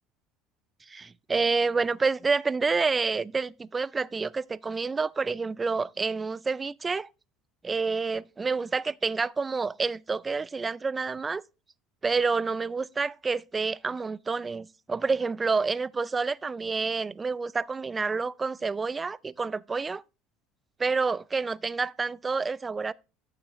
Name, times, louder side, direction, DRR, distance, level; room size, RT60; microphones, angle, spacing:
voice 1, 0.9-7.1 7.6-11.4 12.0-20.0 20.8-22.9, right 4 dB, 20° right, 0.3 m, -28 dB
9.6 x 6.7 x 3.0 m
supercardioid pair, 120°, 0 cm